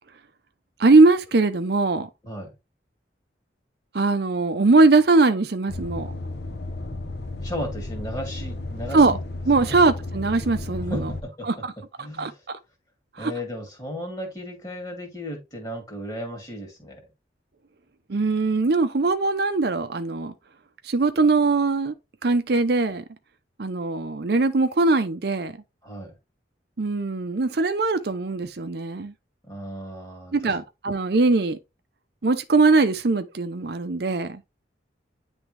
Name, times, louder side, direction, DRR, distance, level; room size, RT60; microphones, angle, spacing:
voice 1, 0.8-2.1 3.9-6.1 8.9-9.2 9.5-11.1 11.4-11.7 12.2-12.6 13.2-13.3 18.1-20.3 20.8-22.0 22.2-23.0 23.6-25.6 26.8-29.1 30.3-31.6 32.2-34.4, right 3 dB, 55° right, 0.6 m, -21 dB
sound 1, 5.7-11.2, left 2 dB, 60° left, 1.0 m, -33 dB
voice 2, 7.4-9.2 9.6-9.8 10.9-11.5 12.0-12.3 13.2-17.0 25.8-26.1 29.5-30.6, equal, 20° left, 2.4 m, -35 dB
9.8 x 3.5 x 3.3 m
head